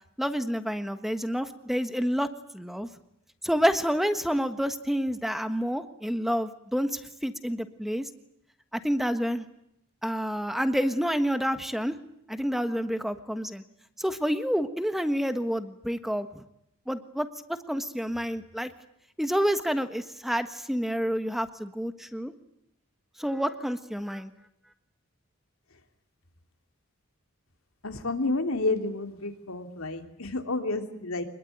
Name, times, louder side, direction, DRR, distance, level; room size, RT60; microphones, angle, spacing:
voice 1, 0.2-2.3 2.5-2.9 3.4-8.1 8.7-9.4 10.0-12.0 12.3-13.6 14.0-16.4 16.9-17.3 17.7-18.7 19.2-22.3 23.2-24.3, equal, ahead, 9 dB, 1.4 m, -28 dB
voice 2, 27.8-31.2, left 2 dB, 80° left, 6 dB, 3.0 m, -30 dB
25.5 x 21.0 x 9.3 m, 0.78 s
head